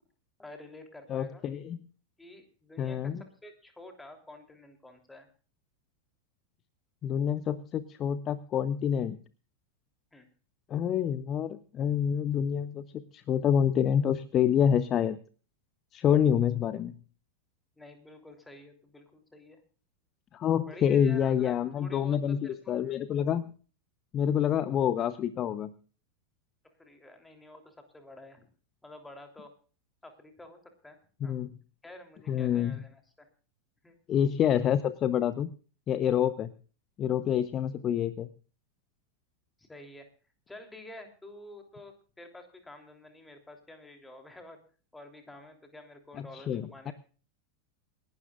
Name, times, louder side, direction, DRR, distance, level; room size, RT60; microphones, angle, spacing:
voice 1, 0.4-1.5 2.2-5.3 10.1-10.3 16.0-16.3 17.8-19.6 20.6-22.8 26.8-28.5 28.8-29.5 30.0-31.4 31.8-33.3 33.8-34.0 39.6-40.1 40.5-44.6 44.9-46.9, left 2 dB, 5° left, 5 dB, 3.1 m, -49 dB
voice 2, 1.1-1.8 2.8-3.2 7.0-9.2 10.7-15.2 15.9-16.9 20.3-23.4 24.1-25.7 31.2-31.5 32.3-32.8 34.1-35.5 35.9-36.5 37.0-38.3 46.2-46.9, left 9 dB, 30° left, 15 dB, 0.8 m, -27 dB
27.5 x 12.0 x 2.4 m, 0.39 s
figure-of-eight pair, 90°, 0 cm